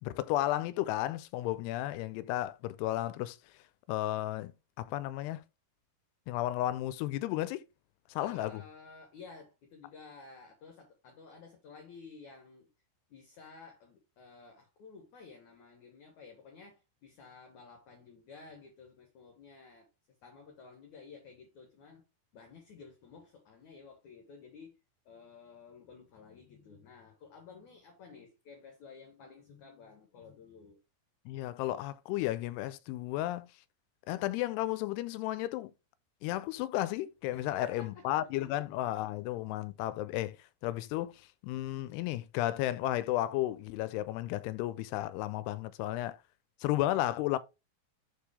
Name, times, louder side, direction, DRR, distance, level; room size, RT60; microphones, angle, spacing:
voice 1, 0.0-3.4 3.9-4.5 4.8-5.4 6.3-7.7 8.1-8.6 31.3-33.5 34.1-35.7 36.2-40.4 40.6-46.2 46.6-47.4, left 15 dB, 85° left, 2.6 m, -33 dB
voice 2, 8.2-12.7 13.1-19.9 20.2-22.0 22.3-24.8 25.1-30.8 37.3-38.1 38.4-38.6, left 5 dB, 65° left, 2.1 m, -53 dB
7.3 x 4.7 x 3.5 m
omnidirectional pair, 4.7 m